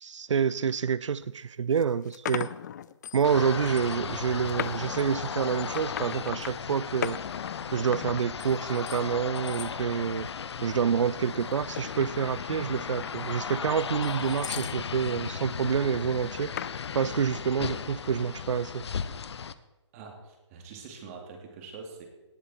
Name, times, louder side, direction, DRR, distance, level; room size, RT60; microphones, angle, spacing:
voice 1, 0.0-2.5 3.1-7.2 7.7-10.3 10.6-16.5 16.9-18.8, right 7 dB, 80° right, 0.4 m, -28 dB
sound 1, 1.2-1.3 1.8-3.4 3.7-4.0 4.5-6.5 7.0-9.0 9.3-9.7 10.2-10.6 11.3-14.8 16.6-17.4, left 10 dB, 35° left, 0.5 m, -39 dB
sound 2, 3.2-19.5, left 6 dB, 60° left, 0.8 m, -36 dB
voice 2, 19.9-22.1, right 4 dB, 30° right, 2.7 m, -44 dB
18.0 x 10.0 x 4.5 m
hypercardioid pair, 150°, 15 cm